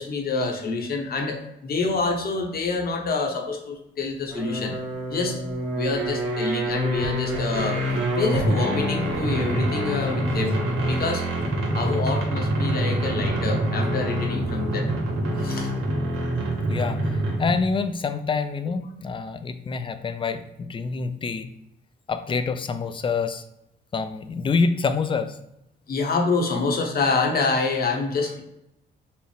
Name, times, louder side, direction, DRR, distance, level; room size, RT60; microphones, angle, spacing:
voice 1, 0.0-4.7 5.1-5.4 5.7-11.3 11.7-14.9 15.4-15.7 25.9-28.4, left 3 dB, 50° left, 3 dB, 0.9 m, -27 dB
sound 1, 4.3-17.7, right 1 dB, 80° right, 1.1 m, -26 dB
voice 2, 16.7-21.5 22.1-23.4 23.9-25.4, left 4 dB, 25° left, 10 dB, 0.4 m, -26 dB
5.5 x 2.1 x 3.2 m, 0.83 s
cardioid pair, 90°, 20 cm